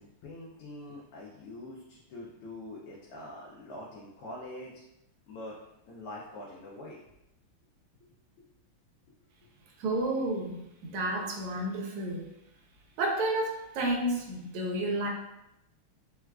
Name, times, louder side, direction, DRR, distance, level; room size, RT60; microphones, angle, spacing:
voice 1, 0.0-4.8 5.3-5.6 5.9-7.0, left 1 dB, 85° left, -4 dB, 1.5 m, -44 dB
voice 2, 9.8-12.3 13.0-15.1, right 1 dB, 80° right, 0 dB, 1.5 m, -31 dB
4.5 x 2.3 x 2.2 m, 0.85 s
omnidirectional pair, 2.4 m